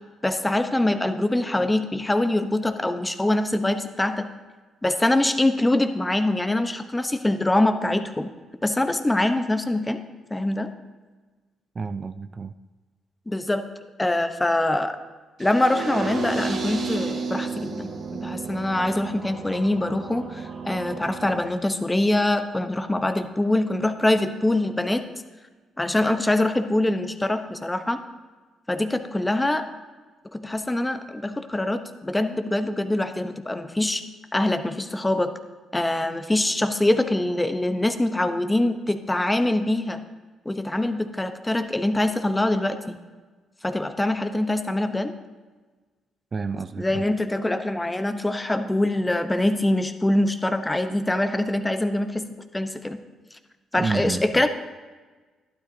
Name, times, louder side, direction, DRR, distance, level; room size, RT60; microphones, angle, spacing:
voice 1, 0.2-4.3 4.8-8.3 8.6-10.0 10.3-10.7 13.3-13.7 14.0-15.0 15.4-25.1 25.8-28.0 28.7-29.7 30.3-34.0 34.3-35.3 35.7-40.0 40.4-43.0 43.6-45.1 46.8-53.0 53.7-54.5, left 1 dB, 15° left, 8 dB, 0.7 m, -24 dB
voice 2, 11.8-12.5 46.3-47.0 53.8-54.4, right 4 dB, 35° right, 11 dB, 0.3 m, -30 dB
sound 1, 15.4-21.4, right 4 dB, 60° right, 1.4 m, -32 dB
12.0 x 12.0 x 2.7 m, 1.3 s
cardioid pair, 90°, 0 cm